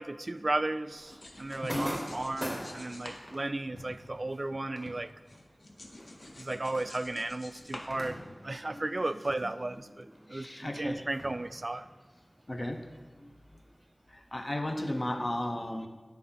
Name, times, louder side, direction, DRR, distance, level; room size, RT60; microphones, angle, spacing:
voice 1, 0.0-5.1 6.4-11.9, right 2 dB, 50° right, 13 dB, 0.3 m, -35 dB
sound 1, 0.9-4.6 4.9-8.6, left 1 dB, 75° left, 0.9 m, -49 dB
sound 2, 0.9-9.9 10.1-13.7, equal, 10° left, 1.4 m, -45 dB
voice 2, 1.6-1.9 8.1-8.2 8.7-9.0 9.4-9.5 10.3-11.1 12.5-12.8 13.2-13.3 14.3-15.9, left 1 dB, 35° left, 6 dB, 0.8 m, -35 dB
10.5 x 4.3 x 5.6 m, 1.3 s
wide cardioid pair, 60°, 0 cm